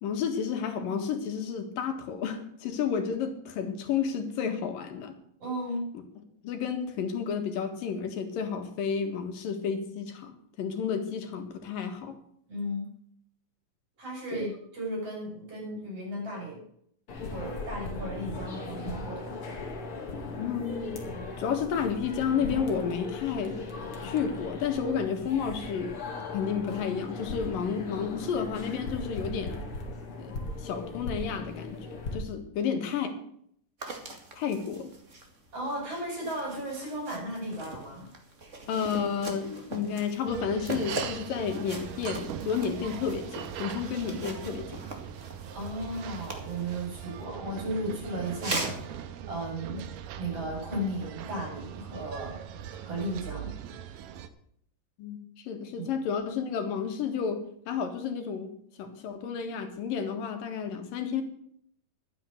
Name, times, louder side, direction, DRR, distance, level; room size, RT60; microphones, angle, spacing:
voice 1, 0.0-5.1 6.4-12.1 14.3-14.5 20.3-20.9 21.4-23.6 24.0-26.0 26.3-29.6 30.2-33.1 34.4-34.9 38.7-44.8 55.0-58.5 58.8-61.2, left 7 dB, 90° left, 6 dB, 3.4 m, -31 dB
voice 2, 5.4-5.9 12.5-12.9 14.0-16.6 17.3-19.5 35.5-38.1 45.5-49.8 50.2-52.4 52.8-53.5 55.8-55.9 58.8-58.9, right 1 dB, 45° right, -2 dB, 7.3 m, -35 dB
sound 1, 17.1-32.2, left 3 dB, 45° left, 2.9 m, -38 dB
sound 2, 33.8-47.2 48.2-48.8, right 2 dB, 25° right, 2.0 m, -41 dB
sound 3, 40.3-54.3, right 9 dB, 85° right, 2.6 m, -41 dB
12.0 x 9.6 x 6.5 m, 0.67 s
omnidirectional pair, 3.8 m